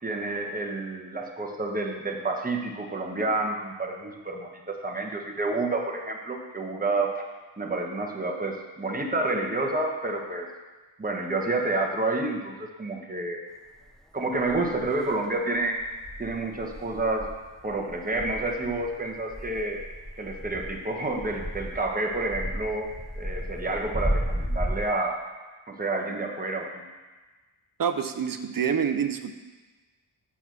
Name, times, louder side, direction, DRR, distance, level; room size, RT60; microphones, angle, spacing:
voice 1, 0.0-7.1 7.6-10.5 11.0-13.4 14.1-15.8 16.2-17.3 17.6-19.8 20.2-22.9 23.1-25.2 25.7-26.8, right 2 dB, 20° right, 0 dB, 1.2 m, -29 dB
sound 1, 13.9-14.0 14.5-15.1 15.6-24.8, equal, ahead, 0.5 m, -34 dB
voice 2, 27.8-29.3, right 7 dB, 45° right, 9 dB, 0.7 m, -27 dB
7.1 x 6.9 x 6.1 m, 1.3 s
wide cardioid pair, 110°, 47 cm